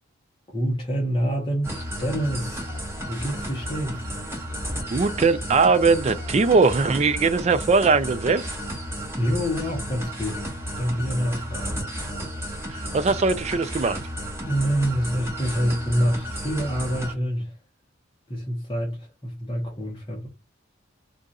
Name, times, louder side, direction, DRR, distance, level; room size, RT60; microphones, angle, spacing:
voice 1, 0.5-2.8 3.1-4.0 9.2-11.8 14.4-17.5 18.3-20.3, equal, 25° left, 0.9 m, -26 dB
sound 1, 1.6-17.1, equal, 15° right, 1.1 m, -33 dB
voice 2, 4.9-8.5 12.7-14.0, right 4 dB, 35° right, 0.4 m, -20 dB
2.5 x 2.4 x 4.0 m
head